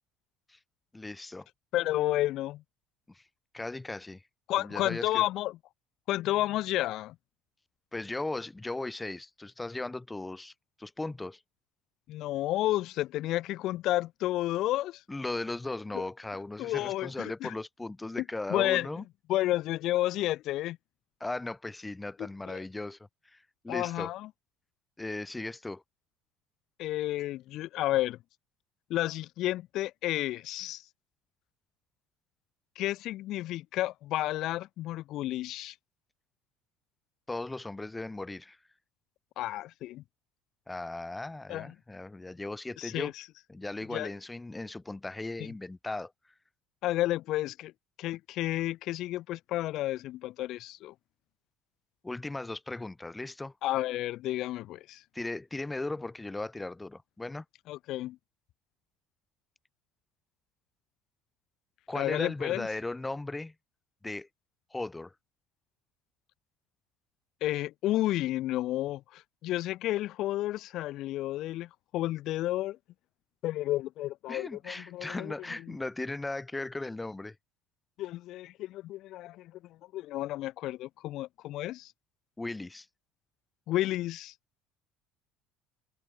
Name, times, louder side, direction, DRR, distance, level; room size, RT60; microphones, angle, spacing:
voice 1, 0.9-1.5 3.1-3.2 3.5-4.2 4.6-5.3 7.9-10.5 10.8-11.4 15.1-19.0 21.2-23.0 23.2-24.1 25.0-25.8 37.3-38.6 40.7-43.1 43.5-46.1 52.0-53.5 55.1-57.4 61.9-63.5 64.0-64.3 64.7-65.1 74.3-77.4 82.4-82.9, left 2 dB, 15° left, 7.5 m, -37 dB
voice 2, 1.7-2.6 4.5-5.6 6.1-7.1 12.1-15.0 16.6-17.5 18.5-18.9 19.3-20.8 22.5-22.6 23.7-24.3 26.8-28.2 28.9-30.8 32.8-35.7 39.4-40.0 41.5-41.7 42.8-43.2 43.9-44.1 46.8-47.7 48.0-50.9 53.6-55.0 57.7-58.2 61.9-62.7 67.4-72.8 73.4-75.3 78.0-79.5 79.9-81.9 83.7-84.3, left 15 dB, 65° left, 5.7 m, -31 dB
hypercardioid pair, 75°, 0 cm